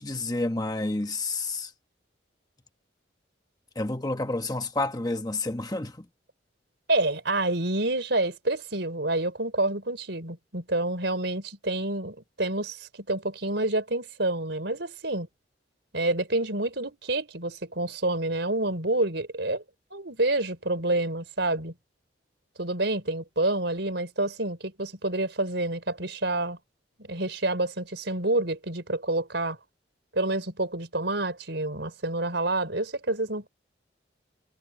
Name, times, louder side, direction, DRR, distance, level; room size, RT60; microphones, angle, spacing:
voice 1, 0.0-1.7 3.7-6.1, left 2 dB, 20° left, 1.1 m, -29 dB
voice 2, 6.9-15.3 15.9-19.6 19.9-21.7 22.6-26.6 27.0-29.6 30.1-33.5, right 2 dB, 65° right, 4.7 m, -28 dB
head